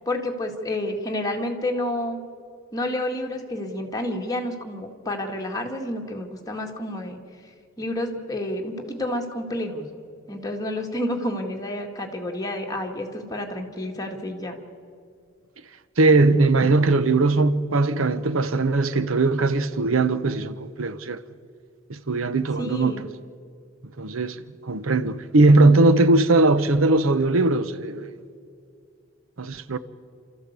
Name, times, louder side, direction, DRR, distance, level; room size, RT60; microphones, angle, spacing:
voice 1, 0.1-2.2 2.7-7.2 7.8-9.9 10.3-14.6 22.6-23.0, left 1 dB, 20° left, 2.1 m, -29 dB
voice 2, 16.0-21.2 21.9-23.0 24.0-24.4 24.7-28.1 29.4-29.8, right 2 dB, 85° right, 0.9 m, -19 dB
28.5 x 14.0 x 8.2 m
head